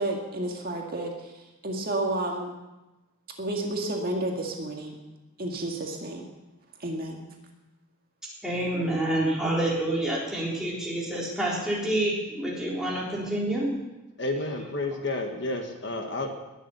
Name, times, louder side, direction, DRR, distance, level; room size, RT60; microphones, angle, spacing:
voice 1, 0.0-1.3 1.6-2.5 3.4-5.0 5.4-6.2 6.8-7.2, right 1 dB, 45° right, 0 dB, 2.1 m, -31 dB
voice 2, 8.4-13.7, right 1 dB, 5° right, -5 dB, 3.8 m, -28 dB
voice 3, 14.2-16.3, left 2 dB, 55° left, 4 dB, 1.6 m, -30 dB
19.5 x 7.4 x 7.0 m, 1.0 s
head